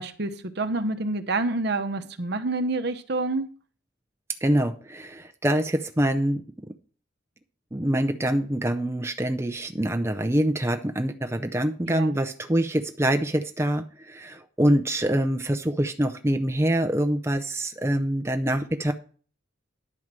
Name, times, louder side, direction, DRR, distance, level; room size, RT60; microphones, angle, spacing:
voice 1, 0.0-3.5 11.9-12.2, right 2 dB, 55° right, 0.9 m, -28 dB
voice 2, 4.4-6.7 7.7-18.9, right 1 dB, 15° right, 0.5 m, -25 dB
10.5 x 4.7 x 7.4 m
head